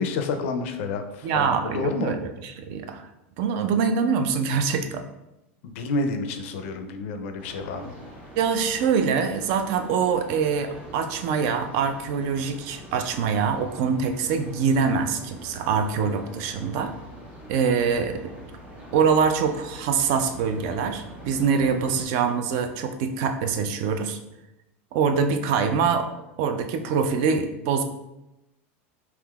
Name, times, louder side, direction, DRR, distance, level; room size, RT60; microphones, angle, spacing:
voice 1, 0.0-2.2 5.6-8.0, left 3 dB, 70° left, 7 dB, 0.4 m, -29 dB
voice 2, 1.2-2.3 2.6-3.0 3.4-5.0 8.4-16.9 17.5-18.2 18.9-24.2 24.9-26.1 26.4-27.8, right 6 dB, 55° right, 7 dB, 0.3 m, -24 dB
sound 1, 7.4-22.1, right 1 dB, 20° right, 1.0 m, -44 dB
3.5 x 2.8 x 2.3 m, 0.92 s
supercardioid pair, 135°, 7 cm